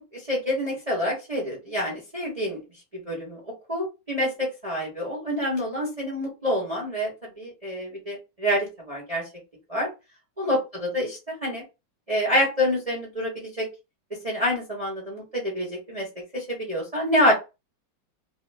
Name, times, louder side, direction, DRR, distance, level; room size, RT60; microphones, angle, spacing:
voice 1, 0.3-2.6 3.1-3.4 3.7-7.1 7.4-9.2 9.7-9.9 10.4-11.6 12.1-13.7 14.2-16.0 16.3-17.3, equal, 25° right, -3 dB, 1.0 m, -27 dB
3.4 x 2.2 x 3.3 m, 0.26 s
omnidirectional pair, 2.1 m